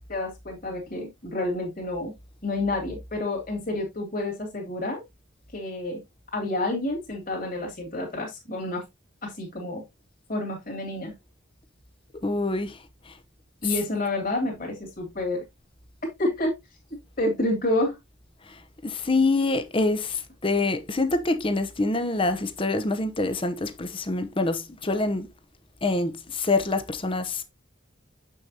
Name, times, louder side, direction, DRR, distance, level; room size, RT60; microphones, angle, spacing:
voice 1, 0.1-2.1 2.4-5.0 5.5-6.0 6.3-8.8 9.2-9.8 10.3-11.2 13.6-15.4 16.2-16.5 16.9-18.0, left 1 dB, 45° left, 2.8 m, -29 dB
voice 2, 12.2-12.8 13.6-13.8 18.8-25.3 25.8-27.4, left 2 dB, 25° left, 0.8 m, -25 dB
7.1 x 6.4 x 2.8 m
head